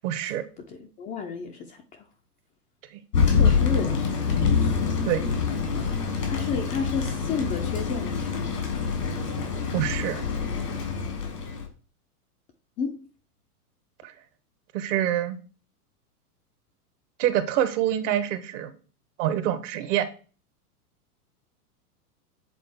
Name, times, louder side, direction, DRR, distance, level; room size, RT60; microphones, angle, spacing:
voice 1, 0.0-0.4 5.0-5.2 9.7-10.2 14.0-14.1 14.7-15.4 17.2-18.7 19.2-20.1, right 11 dB, 50° right, 1.0 m, -26 dB
voice 2, 0.7-2.1 3.2-4.2 4.5-5.1 6.3-8.8 12.8-13.0, left 5 dB, 20° left, 0.4 m, -33 dB
Thunder, 3.1-11.7, left 5 dB, 90° left, 2.5 m, -25 dB
7.7 x 3.7 x 3.5 m
hypercardioid pair, 110°, 46 cm